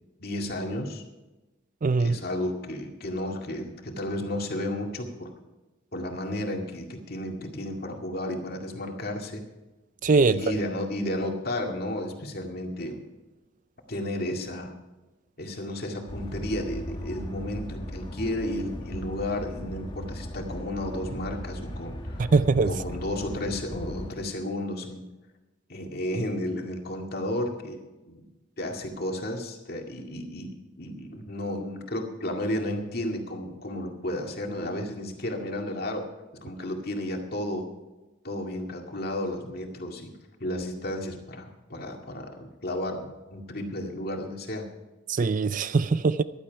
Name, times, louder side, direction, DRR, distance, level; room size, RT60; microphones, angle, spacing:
voice 1, 0.2-1.0 2.0-5.3 5.9-9.4 10.2-13.0 13.9-14.7 15.4-22.3 22.6-25.1 25.7-28.3 28.6-36.0 36.3-37.7 38.2-40.1 40.4-44.7, left 1 dB, 50° left, 2.1 m, -33 dB
voice 2, 1.8-2.2 10.0-10.4 22.2-22.7 45.1-46.2, right 4 dB, 40° right, 0.4 m, -22 dB
sound 1, 16.1-24.1, equal, 25° left, 1.4 m, -37 dB
14.5 x 11.5 x 4.7 m
head